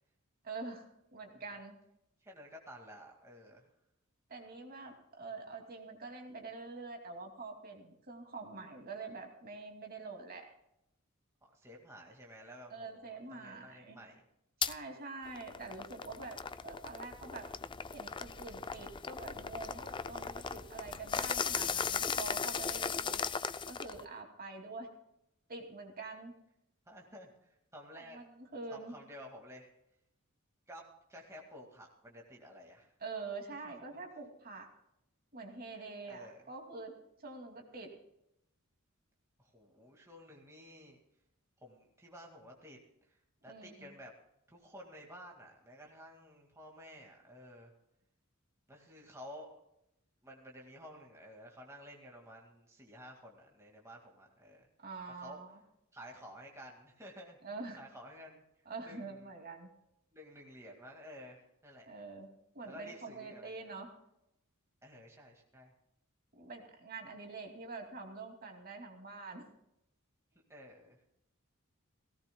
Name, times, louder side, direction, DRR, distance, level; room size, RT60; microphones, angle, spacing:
voice 1, 0.4-1.7 4.3-10.5 12.7-14.0 14.6-17.5 17.9-23.2 23.7-24.9 25.5-26.3 27.9-28.9 33.0-34.7 35.3-36.9 37.2-37.9 43.5-43.9 54.8-55.6 57.4-57.8 58.7-59.7 61.9-62.3 62.5-63.9 66.4-69.5, right 3 dB, 45° right, 2 dB, 2.6 m, -46 dB
voice 2, 2.2-3.7 11.5-14.2 26.9-28.3 28.7-29.7 30.7-30.8 31.1-32.9 33.6-33.7 35.7-36.5 39.4-41.0 41.6-42.8 43.1-43.2 43.4-44.1 44.5-47.7 48.7-49.6 50.2-54.7 55.1-55.4 55.9-57.4 57.8-58.4 58.8-59.3 60.1-61.9 62.6-63.7 64.8-65.7 70.5-71.0, equal, 15° right, -1 dB, 2.1 m, -52 dB
sound 1, 14.6-14.7 15.2-24.0, left 6 dB, 20° left, 0.4 m, -37 dB
17.5 x 17.5 x 2.3 m, 0.81 s
head